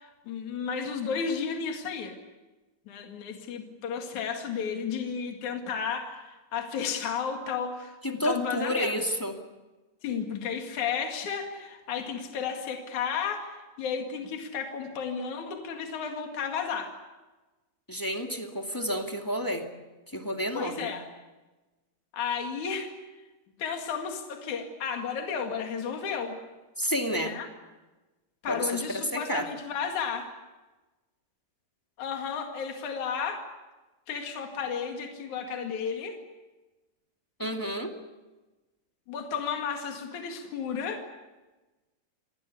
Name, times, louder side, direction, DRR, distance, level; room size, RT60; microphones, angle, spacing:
voice 1, 0.0-2.2 2.9-9.0 10.0-16.9 20.5-21.1 22.1-22.9 23.6-26.4 27.2-27.5 28.4-30.3 32.0-33.4 34.1-36.2 39.1-41.0, left 6 dB, 65° left, 3 dB, 3.5 m, -33 dB
voice 2, 8.0-9.4 17.9-19.7 20.1-20.9 26.8-27.4 28.5-29.5 37.4-37.9, equal, 10° left, 3 dB, 1.5 m, -30 dB
28.0 x 19.5 x 8.4 m, 1.2 s
omnidirectional pair, 3.7 m